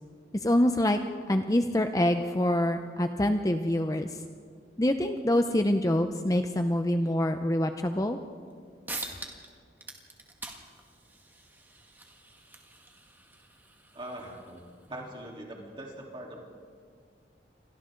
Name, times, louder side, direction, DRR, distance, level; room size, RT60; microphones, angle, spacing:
voice 1, 0.4-1.0 1.3-4.1 4.8-8.2, left 1 dB, 20° left, 6 dB, 0.6 m, -25 dB
sound 1, 8.5-8.6 8.9-9.5 9.8-14.9, right 2 dB, 10° right, 1.9 m, -44 dB
voice 2, 13.9-16.4, right 1 dB, 30° right, -2 dB, 3.6 m, -42 dB
29.0 x 25.0 x 3.9 m, 2.1 s
head